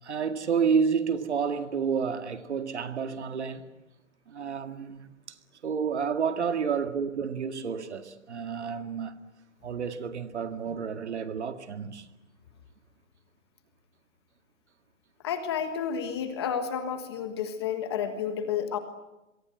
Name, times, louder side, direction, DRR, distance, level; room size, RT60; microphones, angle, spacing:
voice 1, 0.0-3.7 4.3-9.2 9.6-12.1, right 6 dB, 60° right, 2.1 m, -30 dB
voice 2, 15.2-18.8, left 7 dB, 20° left, 1.5 m, -31 dB
27.0 x 23.5 x 7.8 m
hypercardioid pair, 180°, 39 cm